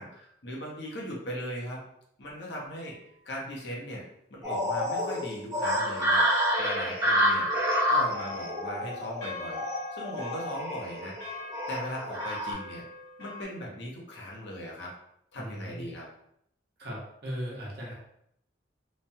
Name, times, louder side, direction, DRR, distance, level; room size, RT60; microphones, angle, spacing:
voice 1, 0.0-1.8 2.2-3.0 3.2-7.5 7.9-9.6 9.9-11.2 11.7-12.8 13.2-14.9 15.3-16.1, equal, 60° left, -3 dB, 0.8 m, -38 dB
sound 1, 2.7-3.3 8.2-13.4, left 3 dB, 85° left, 1.2 m, -44 dB
sound 2, 4.4-12.5, equal, 20° right, 0.7 m, -28 dB
voice 2, 15.3-15.9 16.8-17.9, equal, 55° right, -4 dB, 0.9 m, -37 dB
3.0 x 2.2 x 2.7 m, 0.74 s
head